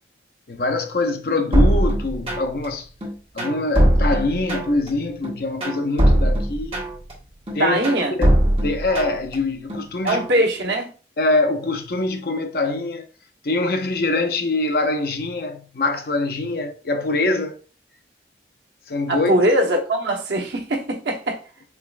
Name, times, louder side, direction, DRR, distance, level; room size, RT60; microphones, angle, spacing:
voice 1, 0.5-2.9 3.3-6.8 7.5-7.8 8.1-10.2 11.2-13.1 13.4-17.6 18.9-19.4, left 2 dB, 55° left, 0.6 m, -24 dB
sound 1, 1.5-2.7 3.0-4.9 5.2-7.1 7.5-9.3 9.7-10.3, right 1 dB, 30° right, 1.5 m, -20 dB
voice 2, 7.6-8.1 10.0-10.9 19.1-21.4, right 1 dB, 75° right, 0.9 m, -21 dB
4.7 x 3.0 x 2.4 m
head